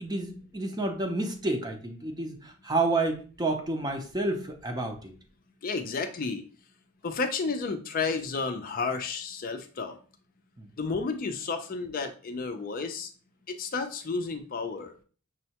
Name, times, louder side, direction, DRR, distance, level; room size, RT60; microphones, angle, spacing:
voice 1, 0.0-5.1 10.6-10.7, right 2 dB, 20° right, 5 dB, 0.5 m, -30 dB
voice 2, 5.6-6.4 7.0-10.0 10.8-13.1 13.5-14.9, left 4 dB, 40° left, 6 dB, 0.4 m, -32 dB
6.1 x 2.1 x 2.8 m, 0.39 s
head